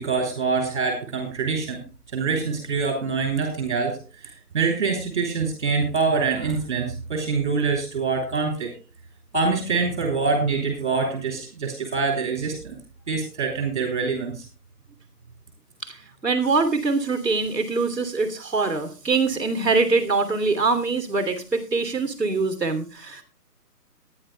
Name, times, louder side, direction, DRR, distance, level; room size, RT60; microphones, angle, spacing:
voice 1, 0.0-1.8 2.1-8.7 9.3-12.8 13.1-14.4, right 4 dB, 30° right, 3 dB, 3.3 m, -25 dB
voice 2, 15.8-23.2, right 4 dB, ahead, -12 dB, 1.2 m, -23 dB
23.0 x 9.9 x 2.2 m, 0.32 s
hypercardioid pair, 175°, 48 cm